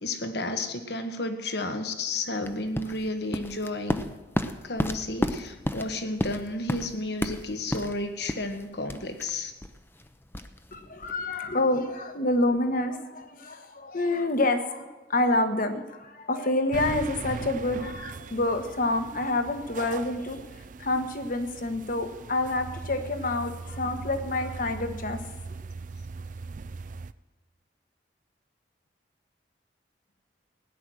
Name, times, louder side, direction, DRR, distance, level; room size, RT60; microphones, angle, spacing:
voice 1, 0.0-4.1 4.6-9.5, left 2 dB, 65° left, 7 dB, 1.5 m, -32 dB
sound 1, 2.4-11.2, left 1 dB, 15° left, 0.7 m, -33 dB
voice 2, 10.7-20.4 20.8-25.2, left 2 dB, 50° left, 7 dB, 1.4 m, -28 dB
sound 2, 16.7-27.1, right 4 dB, 45° right, 0.4 m, -39 dB
17.0 x 9.8 x 6.4 m, 1.2 s
head